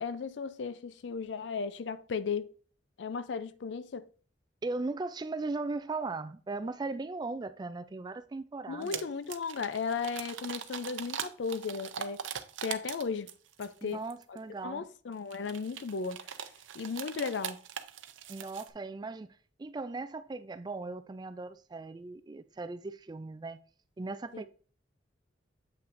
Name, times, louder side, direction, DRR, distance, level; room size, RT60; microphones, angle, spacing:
voice 1, 0.0-2.5 3.0-4.1 8.7-12.2 12.6-13.3 13.6-14.0 14.3-14.4 14.6-16.3 16.7-17.6 24.3-24.4, left 5 dB, 70° left, 0.4 m, -35 dB
voice 2, 4.6-9.0 13.8-14.8 18.3-23.6 24.0-24.5, right 3 dB, 20° right, 0.3 m, -38 dB
sound 1, 8.8-9.0 9.3-13.7 14.1-14.4 15.3-18.7, right 9 dB, 90° right, 0.6 m, -41 dB
7.8 x 5.6 x 2.6 m
head